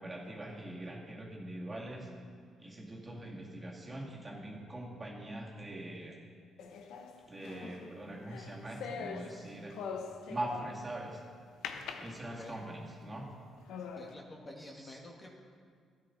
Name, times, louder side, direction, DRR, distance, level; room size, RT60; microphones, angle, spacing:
voice 1, 0.0-2.1 2.6-6.2 7.3-9.8 10.3-11.2 12.0-13.3 14.6-15.0, right 1 dB, 25° right, -3 dB, 2.2 m, -42 dB
sound 1, 6.6-11.0 11.6-12.7 13.2-13.3 13.7-14.1, left 6 dB, 80° left, 0.7 m, -43 dB
voice 2, 12.2-12.6 13.9-15.3, left 1 dB, 30° left, 0 dB, 1.4 m, -49 dB
13.0 x 10.0 x 4.0 m, 2.1 s
cardioid pair, 90°, 0 cm